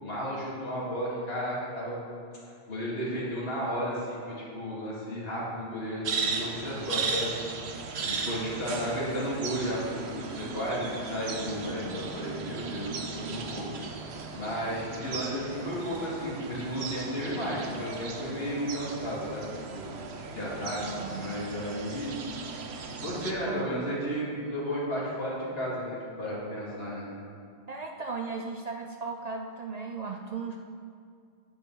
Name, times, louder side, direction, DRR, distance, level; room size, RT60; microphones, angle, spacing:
voice 1, 0.0-2.0 2.7-7.3 8.0-13.7 14.3-19.9 20.3-20.8 21.0-22.1 23.0-27.1, equal, 65° left, -6 dB, 2.5 m, -33 dB
sound 1, 6.0-23.3, right 4 dB, 75° right, 1.1 m, -36 dB
voice 2, 8.3-8.6 20.8-21.3 23.5-23.7 27.7-30.6, right 4 dB, 50° right, 2 dB, 0.5 m, -36 dB
10.0 x 8.7 x 3.8 m, 2.3 s
omnidirectional pair, 1.1 m